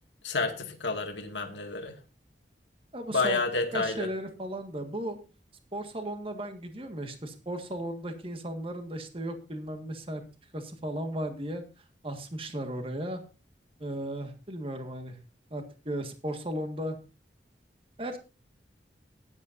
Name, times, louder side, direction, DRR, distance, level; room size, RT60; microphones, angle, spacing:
voice 1, 0.2-2.0 3.1-4.1, left 3 dB, 85° left, 3 dB, 2.1 m, -30 dB
voice 2, 2.9-3.4 3.7-5.2 5.7-10.2 10.5-13.2 13.8-15.2 15.5-17.0 18.0-18.2, right 1 dB, 30° right, 6 dB, 1.7 m, -36 dB
17.0 x 10.5 x 2.6 m, 0.31 s
head